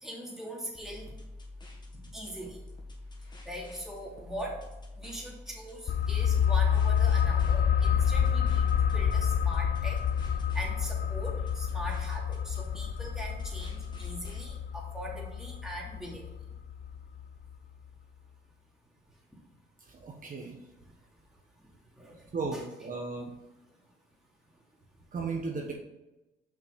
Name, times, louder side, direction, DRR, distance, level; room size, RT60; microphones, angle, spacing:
voice 1, 0.0-1.1 2.1-2.6 3.4-4.6 5.0-10.0 10.5-16.3 22.0-22.3 22.5-22.6, right 1 dB, ahead, -3 dB, 2.6 m, -41 dB
sound 1, 0.7-14.5, left 2 dB, 20° left, 1.8 m, -47 dB
sound 2, 5.9-17.2 17.5-17.6, left 8 dB, 50° left, 0.5 m, -28 dB
voice 2, 19.8-20.6 22.3-23.3 25.1-25.7, right 4 dB, 45° right, 0 dB, 1.3 m, -35 dB
5.9 x 5.8 x 5.2 m, 1.0 s
cardioid pair, 90°, 20 cm